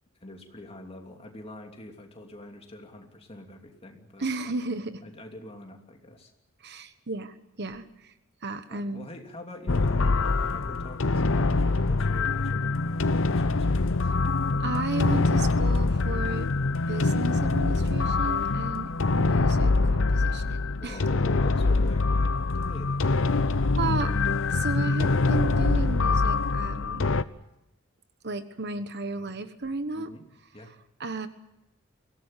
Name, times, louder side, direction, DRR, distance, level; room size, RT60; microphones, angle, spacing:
voice 1, 0.2-4.3 5.0-6.3 8.7-14.1 20.1-23.1 29.9-30.2 30.5-30.7, left 1 dB, 30° left, 3 dB, 3.0 m, -45 dB
voice 2, 4.2-4.9 6.6-8.1 8.4-9.1 14.6-16.5 16.9-21.0 23.7-24.1 24.5-27.1 28.2-30.1 31.0-31.3, right 3 dB, 55° right, 10 dB, 1.2 m, -34 dB
sound 1, 9.7-27.2, left 3 dB, 65° left, 0.8 m, -24 dB
23.5 x 17.0 x 9.1 m, 0.91 s
head